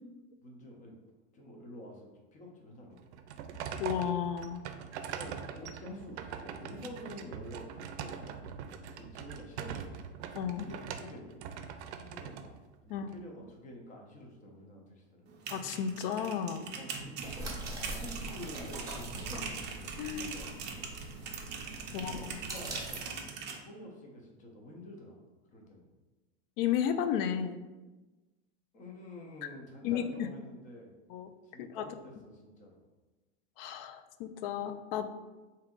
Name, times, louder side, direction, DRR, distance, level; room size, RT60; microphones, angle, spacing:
voice 1, 0.4-0.9 1.3-3.0 5.1-8.4 8.9-10.0 10.5-11.4 12.0-12.6 12.8-15.3 16.7-19.7 20.0-20.8 21.8-23.2 23.6-25.2 25.5-25.9 28.7-30.9 31.4-32.8, left 1 dB, 20° left, 0 dB, 0.8 m, -48 dB
sound 1, 3.0-13.2, right 7 dB, 75° right, 0.5 m, -42 dB
voice 2, 3.8-4.6 10.3-10.7 12.9-13.1 15.5-16.7 20.0-20.3 21.9-22.4 26.6-27.6 29.8-30.3 31.1-31.3 31.6-31.9 33.6-35.1, left 8 dB, 55° left, 10 dB, 0.5 m, -33 dB
sound 2, 15.3-23.6, right 6 dB, 30° right, 0.6 m, -42 dB
sound 3, 17.2-23.0, right 2 dB, 10° right, 0.9 m, -42 dB
3.4 x 2.8 x 3.7 m, 1.2 s
supercardioid pair, 130°, 34 cm